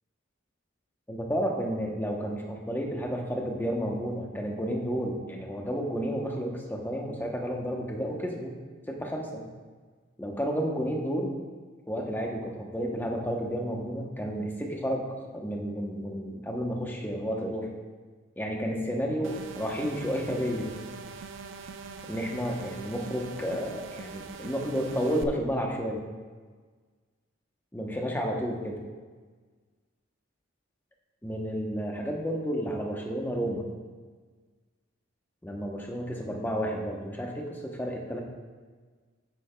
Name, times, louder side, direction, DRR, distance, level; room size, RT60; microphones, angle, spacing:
voice 1, 1.1-8.5 8.9-9.4 10.2-11.4 11.9-15.1 15.3-17.7 18.4-20.7 22.1-26.1 27.7-28.8 31.2-33.6 35.4-38.2, equal, 10° left, 1 dB, 0.9 m, -31 dB
sound 1, 19.2-25.2, right 5 dB, 75° right, 0.5 m, -42 dB
9.8 x 8.7 x 2.3 m, 1.4 s
head